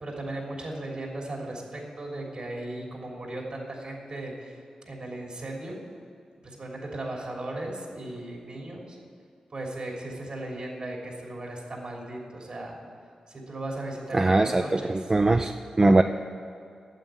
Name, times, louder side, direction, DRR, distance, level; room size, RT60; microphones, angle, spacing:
voice 1, 0.0-5.8 6.4-9.0 9.5-12.8 13.3-15.0, right 1 dB, 55° right, -1 dB, 3.2 m, -37 dB
voice 2, 14.1-15.5 15.8-16.0, right 2 dB, 30° right, 7 dB, 0.5 m, -21 dB
9.0 x 7.9 x 9.1 m, 2.4 s
cardioid pair, 55°, 2 cm